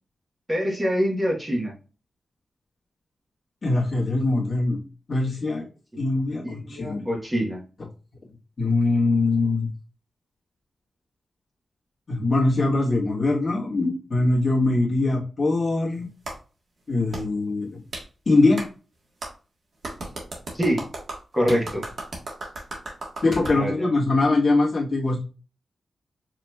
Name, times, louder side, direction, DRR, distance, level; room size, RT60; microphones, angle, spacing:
voice 1, 0.5-1.7 6.4-7.6 20.5-20.8 21.3-21.8 23.5-23.9, equal, 15° right, -2 dB, 1.1 m, -25 dB
voice 2, 3.6-4.8 5.1-5.6 6.0-7.1 8.6-9.7 12.1-16.1 16.9-17.7 18.2-18.6 21.5-21.6 23.2-25.2, left 2 dB, 40° left, -4 dB, 1.4 m, -22 dB
Clapping, 16.2-16.4 17.1-17.2 17.9-18.0 18.6-18.7 19.2-19.3 19.8-23.6, right 2 dB, 60° right, 1.3 m, -35 dB
5.0 x 3.0 x 2.2 m, 0.34 s
wide cardioid pair, 155°, 0 cm